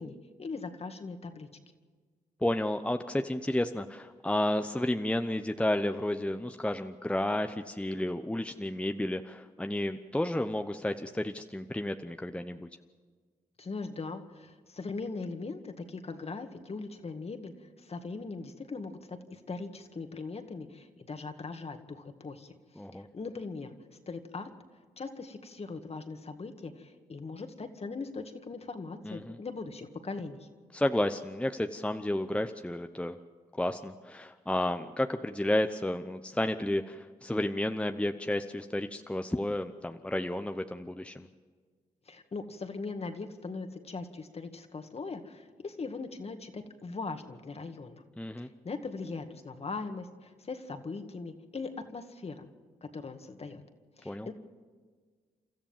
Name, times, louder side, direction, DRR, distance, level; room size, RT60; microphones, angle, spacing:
voice 1, 0.0-1.5 13.6-22.6 22.9-23.7 24.1-24.5 25.0-30.5 42.1-48.0 48.4-52.5 52.8-53.6 54.0-54.3, left 4 dB, 45° left, 7 dB, 2.0 m, -40 dB
voice 2, 2.4-12.7 22.8-23.1 29.0-29.4 30.7-33.2 33.6-41.3 48.2-48.5 54.0-54.3, left 1 dB, 10° left, 7 dB, 0.9 m, -31 dB
30.0 x 13.5 x 7.4 m, 1.5 s
supercardioid pair, 60°, 15 cm